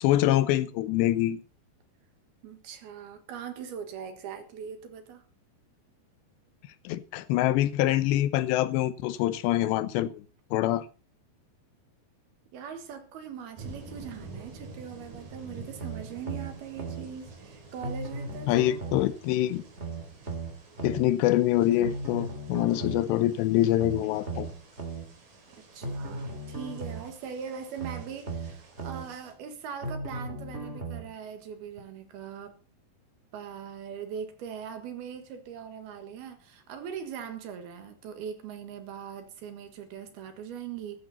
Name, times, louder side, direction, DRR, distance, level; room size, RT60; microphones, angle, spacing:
voice 1, 0.0-1.4 6.8-10.2 10.5-10.9 18.5-19.6 20.8-24.5, left 14 dB, 80° left, 3.0 m, -25 dB
voice 2, 2.4-5.2 12.5-19.0 25.5-32.6 33.3-41.0, right 7 dB, 70° right, 3.3 m, -41 dB
sound 1, 13.6-29.3, right 3 dB, 50° right, 5.8 m, -49 dB
sound 2, 15.8-17.1 17.8-19.1 19.8-21.1 21.8-23.1 23.8-25.1 25.8-27.1 27.8-29.1 29.8-31.1 31.8-31.9, right 3 dB, 15° right, 2.7 m, -36 dB
15.0 x 13.5 x 4.2 m
omnidirectional pair, 5.0 m